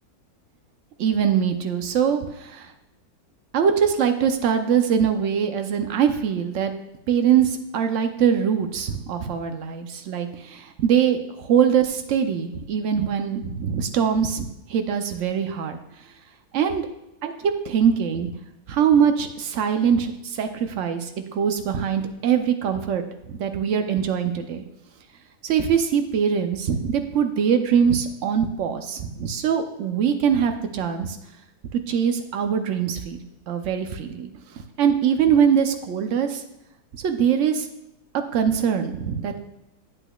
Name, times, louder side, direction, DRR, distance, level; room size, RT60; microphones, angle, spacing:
voice 1, 1.0-2.7 3.5-6.7 7.1-15.8 16.5-16.9 17.2-18.3 18.7-24.6 25.4-31.2 31.7-33.2 33.5-34.3 34.8-36.4 36.9-37.7 38.3-39.4, right 7 dB, 60° right, 7 dB, 0.8 m, -22 dB
8.8 x 8.1 x 2.3 m, 0.89 s
omnidirectional pair, 1.8 m